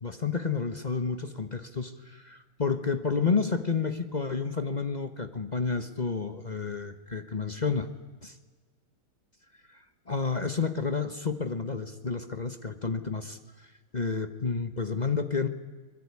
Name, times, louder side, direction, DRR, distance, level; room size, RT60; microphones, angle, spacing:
voice 1, 0.0-7.9 8.2-8.3 9.7-9.8 10.1-13.7 13.9-15.5, left 5 dB, 30° left, 9 dB, 0.8 m, -30 dB
22.5 x 21.5 x 9.7 m, 1.4 s
omnidirectional pair, 2.3 m